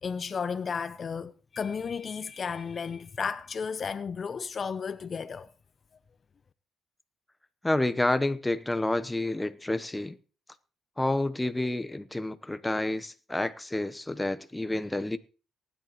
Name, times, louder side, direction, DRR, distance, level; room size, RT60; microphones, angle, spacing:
voice 1, 0.0-5.5, left 6 dB, 45° left, 0.6 m, -33 dB
voice 2, 7.6-10.2 11.0-15.2, left 1 dB, 10° left, 0.9 m, -29 dB
19.0 x 10.0 x 3.0 m
cardioid pair, 90°, 0 cm